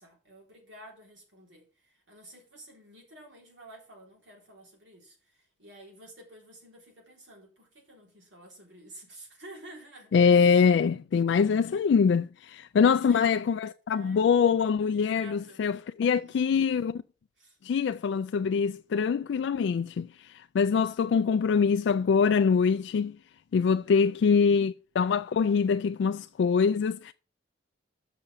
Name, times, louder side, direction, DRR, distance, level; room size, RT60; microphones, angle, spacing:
voice 1, 0.0-10.6 12.8-13.4 13.9-14.2 14.9-15.6 16.1-16.6 17.4-17.6 23.8-24.5, right 1 dB, 80° right, 3.6 m, -51 dB
voice 2, 10.1-16.9 17.6-20.1 20.5-23.2 23.5-27.1, left 6 dB, 75° left, 0.3 m, -24 dB
6.6 x 6.0 x 6.9 m
head